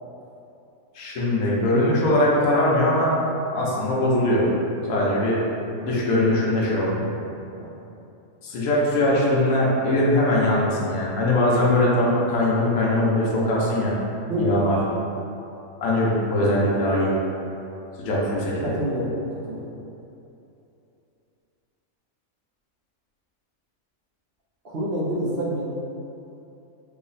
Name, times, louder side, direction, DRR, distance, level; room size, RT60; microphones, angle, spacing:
voice 1, 0.9-3.1 3.5-4.5 4.9-5.4 5.8-7.1 8.4-13.9 14.4-14.8 15.8-17.1 18.0-18.7, left 1 dB, 80° left, -5 dB, 1.2 m, -21 dB
voice 2, 14.2-14.6 18.6-19.2 19.5-19.7 24.6-25.7, equal, 60° right, -5 dB, 0.7 m, -27 dB
3.5 x 2.0 x 3.9 m, 2.8 s
omnidirectional pair, 1.4 m